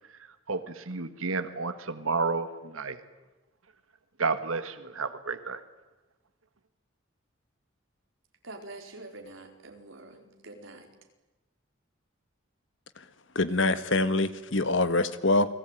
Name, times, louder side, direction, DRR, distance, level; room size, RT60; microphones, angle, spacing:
voice 1, 0.5-3.0 4.2-5.6, right 4 dB, 80° right, 10 dB, 1.7 m, -31 dB
voice 2, 8.4-10.9, right 2 dB, 65° right, 4 dB, 4.6 m, -46 dB
voice 3, 13.3-15.5, left 2 dB, 65° left, 12 dB, 1.7 m, -25 dB
29.5 x 20.5 x 9.2 m, 1.1 s
head